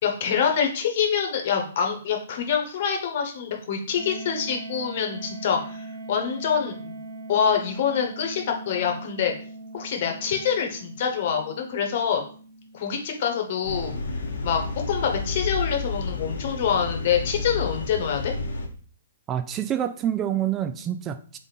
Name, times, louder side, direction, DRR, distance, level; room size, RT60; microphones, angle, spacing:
voice 1, 0.0-7.0 7.3-9.3 9.7-12.2 12.7-13.9 14.4-18.3, left 7 dB, 50° left, 3 dB, 1.1 m, -26 dB
sound 1, 3.9-14.6, right 2 dB, 45° right, 1.2 m, -41 dB
sound 2, 13.6-18.7, left 3 dB, 75° left, 1.0 m, -30 dB
voice 2, 19.3-21.4, right 10 dB, 25° right, 10 dB, 0.3 m, -27 dB
3.7 x 3.4 x 4.1 m, 0.43 s
hypercardioid pair, 125°, 0 cm